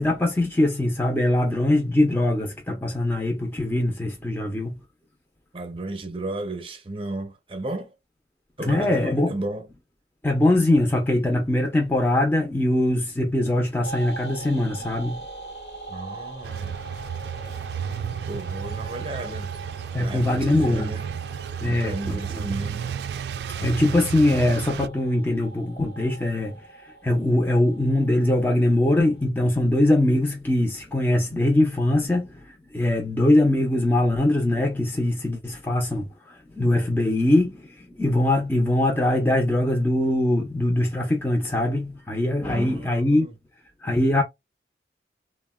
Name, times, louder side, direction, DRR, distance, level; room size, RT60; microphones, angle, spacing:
voice 1, 0.0-4.7 8.6-9.3 10.2-15.2 19.9-20.9 21.6-22.4 23.6-43.3 43.8-44.2, left 1 dB, 10° left, 0.5 m, -22 dB
voice 2, 5.5-7.9 8.6-9.7 15.9-16.9 18.3-19.5 20.0-21.0 21.6-22.9 42.5-43.3, right 2 dB, 30° right, 0.6 m, -34 dB
sound 1, 13.8-29.2, right 3 dB, 70° left, 1.1 m, -42 dB
sound 2, 16.4-24.9, right 7 dB, 70° right, 0.3 m, -32 dB
3.5 x 2.1 x 2.2 m
head